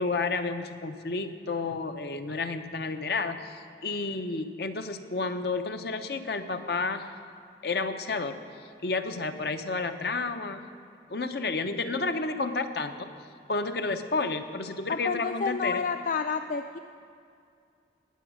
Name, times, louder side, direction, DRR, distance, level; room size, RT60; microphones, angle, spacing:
voice 1, 0.0-7.1 7.6-8.4 8.8-10.6 11.1-13.1 13.5-15.8, left 3 dB, 65° left, 8 dB, 0.7 m, -31 dB
voice 2, 14.9-16.8, left 5 dB, 45° left, 7 dB, 0.3 m, -29 dB
18.5 x 8.0 x 6.2 m, 2.4 s
head